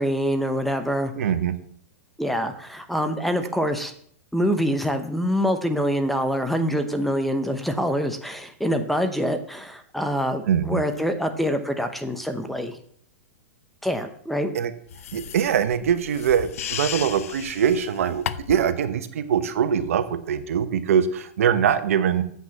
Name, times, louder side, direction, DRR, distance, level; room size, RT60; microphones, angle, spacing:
voice 1, 0.0-1.3 2.2-3.9 4.3-12.8 13.8-14.5, equal, ahead, 8 dB, 0.8 m, -25 dB
voice 2, 1.2-1.5 10.5-10.8 14.5-14.7 15.1-22.2, right 8 dB, 75° right, 11 dB, 1.0 m, -23 dB
sound 1, 14.9-18.7, left 10 dB, 75° left, 0.6 m, -34 dB
7.9 x 6.0 x 7.1 m, 0.62 s
hypercardioid pair, 130°, 8 cm